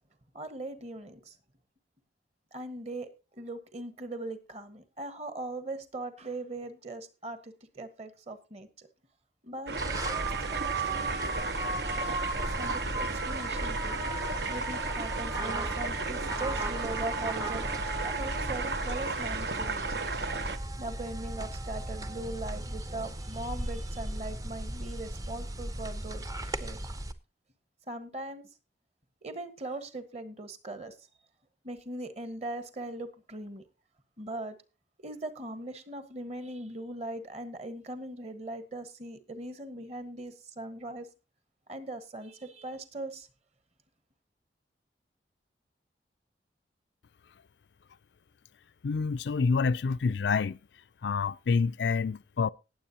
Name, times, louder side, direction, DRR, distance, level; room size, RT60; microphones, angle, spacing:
voice 1, 0.3-1.4 2.5-8.9 9.4-11.2 12.4-14.0 14.5-17.7 18.0-20.1 20.8-26.8 27.9-28.5 29.2-31.1 31.6-33.6 34.2-34.6 35.0-41.1 41.7-43.3, right 2 dB, 35° right, 1.4 m, -40 dB
sound 1, 9.7-20.6, right 4 dB, 65° right, 0.9 m, -34 dB
sound 2, 9.8-27.1, right 2 dB, 20° right, 0.7 m, -36 dB
voice 2, 48.8-50.6 51.0-52.5, left 5 dB, 75° left, 0.4 m, -27 dB
19.0 x 7.6 x 2.9 m
head